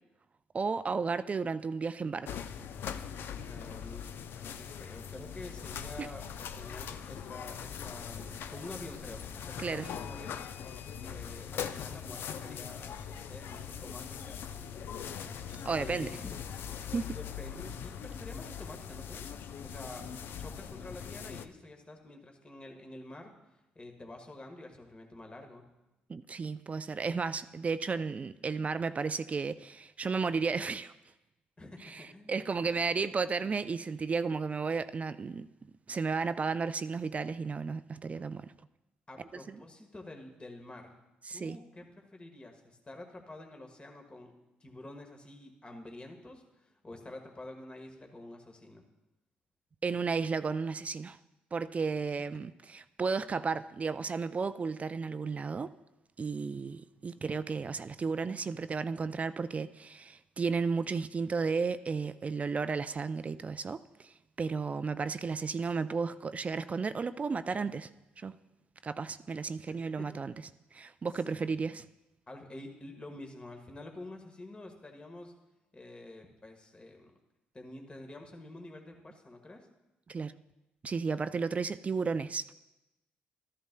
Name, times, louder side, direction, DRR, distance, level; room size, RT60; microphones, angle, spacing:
voice 1, 0.5-2.4 6.0-6.1 9.6-9.9 15.6-16.1 16.9-17.1 26.1-30.9 31.8-35.5 35.9-38.5 39.5-39.6 41.2-41.6 49.8-51.2 51.5-55.7 56.2-67.9 68.2-68.3 68.8-70.3 70.7-71.8 80.1-80.3 80.8-82.5, right 5 dB, 35° right, 0.4 m, -33 dB
sound 1, 2.3-21.5, left 8 dB, 65° left, 0.5 m, -41 dB
voice 2, 3.4-10.4 11.0-14.4 15.8-16.4 17.1-19.3 19.6-20.1 20.4-25.7 31.6-32.3 32.6-32.9 39.1-41.0 41.3-44.3 44.6-48.8 69.7-70.1 71.3-71.6 72.3-75.3 75.7-77.1 77.5-79.7, left 2 dB, 25° left, 1.5 m, -48 dB
13.0 x 11.0 x 2.2 m
hypercardioid pair, 55°, 4 cm